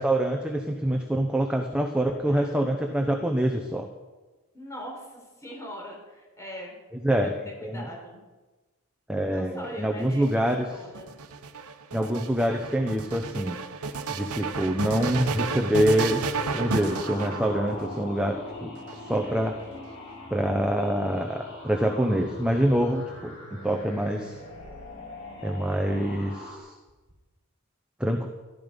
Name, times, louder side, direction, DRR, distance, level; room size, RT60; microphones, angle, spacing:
voice 1, 0.0-3.9 7.0-7.3 7.6-7.9 9.1-10.7 11.9-13.6 14.1-19.6 20.3-23.3 23.6-24.4 25.4-26.7 28.0-28.3, right 1 dB, 5° right, 2 dB, 0.9 m, -26 dB
voice 2, 4.5-6.8 7.1-7.3 7.6-8.2 9.3-10.3 10.7-11.1 19.3-19.8, equal, 15° left, -2 dB, 4.1 m, -42 dB
sound 1, 10.0-18.0 18.8-19.6, right 4 dB, 90° right, 1.0 m, -32 dB
sound 2, 14.8-26.6, left 1 dB, 55° left, 4.7 m, -41 dB
14.5 x 12.5 x 5.3 m, 1.2 s
head